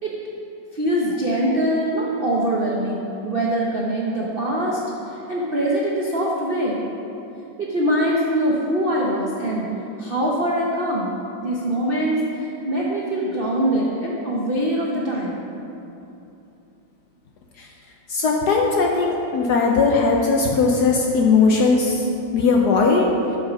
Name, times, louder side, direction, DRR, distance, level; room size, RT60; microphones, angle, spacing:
voice 1, 0.7-4.8 5.1-6.8 7.6-9.7 10.0-11.2 11.4-15.4, right 1 dB, 60° right, -4 dB, 0.5 m, -23 dB
voice 2, 18.1-22.1 22.3-23.1, left 4 dB, 70° left, 0 dB, 1.0 m, -18 dB
8.4 x 5.5 x 6.2 m, 2.8 s
omnidirectional pair, 2.3 m